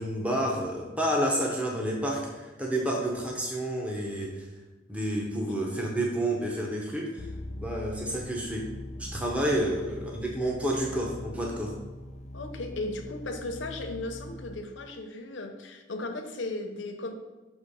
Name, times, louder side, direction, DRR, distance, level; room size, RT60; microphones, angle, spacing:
voice 1, 0.0-4.4 4.9-7.3 7.6-8.7 9.0-11.7, right 1 dB, 5° right, -2 dB, 0.7 m, -29 dB
sound 1, 7.2-14.6, left 1 dB, 35° left, 0.4 m, -42 dB
voice 2, 12.3-17.1, left 2 dB, 75° left, 5 dB, 0.7 m, -36 dB
6.2 x 3.0 x 5.5 m, 1.2 s
head